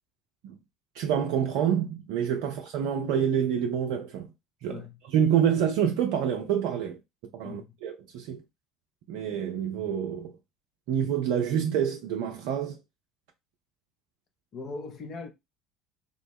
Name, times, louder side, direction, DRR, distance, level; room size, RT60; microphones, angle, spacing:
voice 1, 0.9-4.3 4.6-4.8 5.1-7.0 7.3-8.4 9.1-10.3 10.9-12.8, right 8 dB, 65° right, 0.4 m, -27 dB
voice 2, 7.4-7.8 14.5-15.3, left 4 dB, 45° left, 0.7 m, -40 dB
3.6 x 2.0 x 3.5 m
figure-of-eight pair, 60°, 0 cm